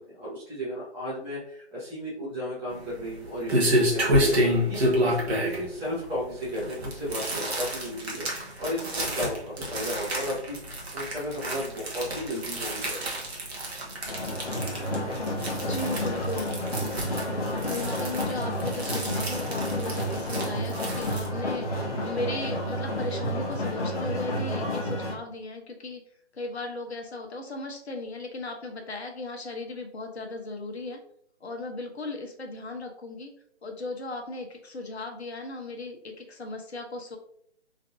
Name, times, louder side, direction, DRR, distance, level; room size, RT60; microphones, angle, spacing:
voice 1, 0.1-6.6 6.9-13.0, equal, 5° right, -11 dB, 1.4 m, -34 dB
sound 1, 2.7-21.3, equal, 65° right, 1.3 m, -29 dB
sound 2, 14.1-25.1, equal, 30° left, 1.4 m, -30 dB
voice 2, 15.6-16.6 17.1-26.0 26.3-31.0 31.4-33.3 33.6-37.2, left 2 dB, 65° left, 3 dB, 1.0 m, -36 dB
3.9 x 3.4 x 2.7 m, 0.66 s
figure-of-eight pair, 145°, 34 cm